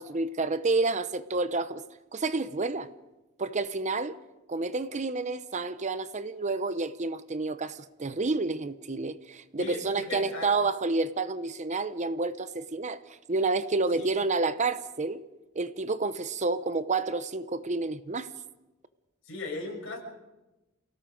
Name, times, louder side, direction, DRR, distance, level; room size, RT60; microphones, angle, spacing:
voice 1, 0.0-1.8 2.1-2.9 3.4-4.2 4.5-15.2 15.5-18.3, right 3 dB, 35° right, 0.7 m, -29 dB
voice 2, 9.6-10.5 14.0-14.1 19.3-20.0, left 3 dB, 60° left, 6.9 m, -37 dB
29.0 x 18.0 x 5.2 m
head